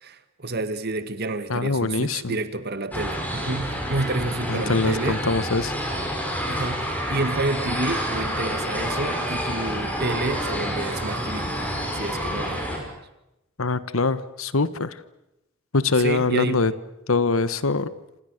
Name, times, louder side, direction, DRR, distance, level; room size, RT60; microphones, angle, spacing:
voice 1, 0.0-5.2 6.5-11.5 11.9-12.9 16.0-16.6, right 2 dB, 50° right, 11 dB, 2.1 m, -29 dB
voice 2, 1.5-2.3 4.5-5.7 13.6-15.0 15.7-16.7 17.1-17.9, left 3 dB, 75° left, 15 dB, 1.3 m, -23 dB
sound 1, 2.9-12.8, equal, 10° left, 6.2 m, -28 dB
28.0 x 27.0 x 6.6 m, 0.91 s
head